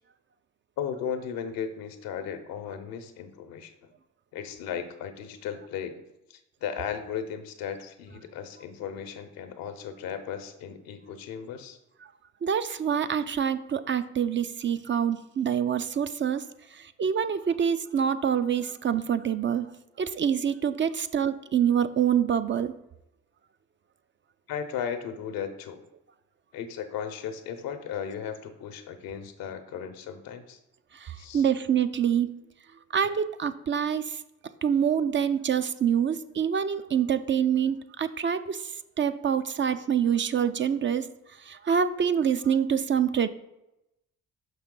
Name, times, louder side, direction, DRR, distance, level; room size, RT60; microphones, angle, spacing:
voice 1, 0.8-3.7 4.3-5.9 6.3-11.8 24.5-25.8 26.5-30.6 31.2-31.5, left 8 dB, 80° left, 9 dB, 0.8 m, -36 dB
voice 2, 12.4-16.4 17.0-19.7 20.0-22.7 31.0-32.4 32.9-34.2 34.6-38.6 39.0-41.1 41.5-43.3, right 8 dB, 35° right, 11 dB, 0.4 m, -26 dB
5.7 x 5.7 x 3.8 m, 0.89 s
supercardioid pair, 55°, 35 cm